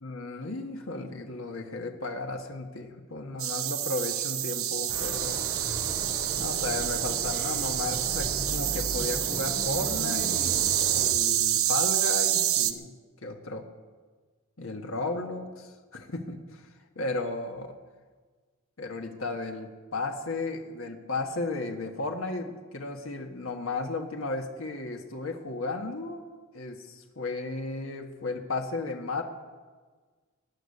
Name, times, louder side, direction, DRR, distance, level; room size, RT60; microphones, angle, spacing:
voice 1, 0.0-5.5 6.4-12.9 13.2-13.6 14.6-16.7 16.9-17.7 18.8-26.2 26.5-29.2, left 3 dB, 70° left, 3 dB, 1.5 m, -34 dB
sound 1, 3.4-12.7, right 12 dB, 80° right, 0.9 m, -28 dB
sound 2, 4.9-11.1, equal, 15° right, 5.3 m, -37 dB
20.0 x 10.0 x 6.7 m, 1.4 s
head